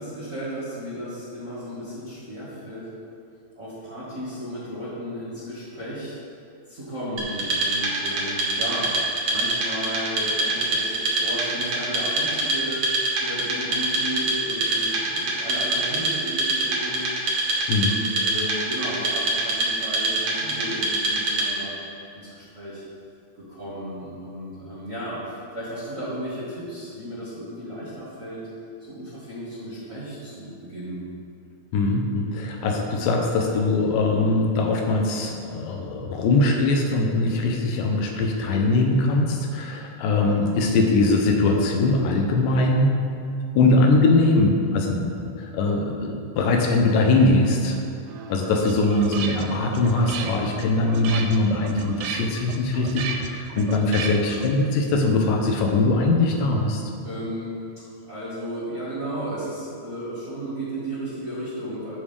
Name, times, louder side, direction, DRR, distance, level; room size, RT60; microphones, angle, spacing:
voice 1, 0.0-2.9 3.5-6.2 6.7-12.8 13.2-17.1 17.7-21.7 22.1-22.8 23.5-28.4 28.8-31.0 57.0-57.6 58.1-62.0, equal, 40° right, -11 dB, 1.2 m, -34 dB
Wood, 7.2-21.7, right 2 dB, 60° right, 1.6 m, -25 dB
voice 2, 31.7-42.9 43.6-47.8 48.3-56.8, left 2 dB, 80° left, 1 dB, 2.3 m, -21 dB
sound 1, 48.1-54.7, right 5 dB, 85° right, 1.6 m, -34 dB
12.5 x 4.8 x 3.4 m, 2.4 s
omnidirectional pair, 4.0 m